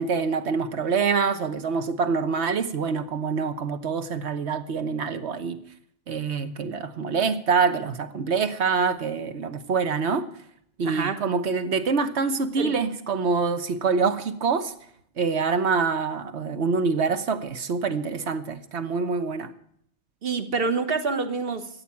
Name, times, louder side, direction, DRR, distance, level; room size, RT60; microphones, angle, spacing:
voice 1, 0.0-5.6 6.1-10.3 10.8-14.7 15.2-19.5, right 5 dB, 75° right, 1.4 m, -25 dB
voice 2, 10.8-11.2 12.6-12.7 20.2-21.7, right 4 dB, 60° right, 1.4 m, -27 dB
13.5 x 9.1 x 8.4 m
omnidirectional pair, 1.1 m